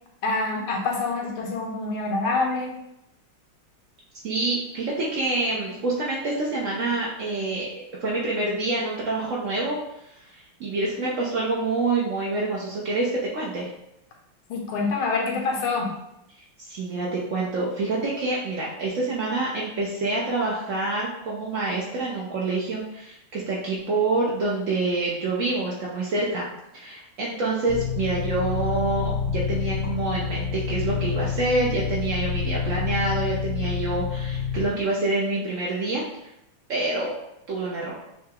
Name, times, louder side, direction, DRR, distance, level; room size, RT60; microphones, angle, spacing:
voice 1, 0.2-2.7 14.5-15.9, left 3 dB, 85° left, 0 dB, 1.8 m, -26 dB
voice 2, 4.2-9.8 10.3-13.7 16.6-26.5 26.7-36.3 36.7-37.1 37.5-38.0, right 2 dB, 85° right, -5 dB, 0.6 m, -27 dB
sound 1, 27.7-34.7, left 6 dB, 65° left, 1.0 m, -28 dB
6.7 x 2.3 x 2.8 m, 0.84 s
omnidirectional pair, 2.3 m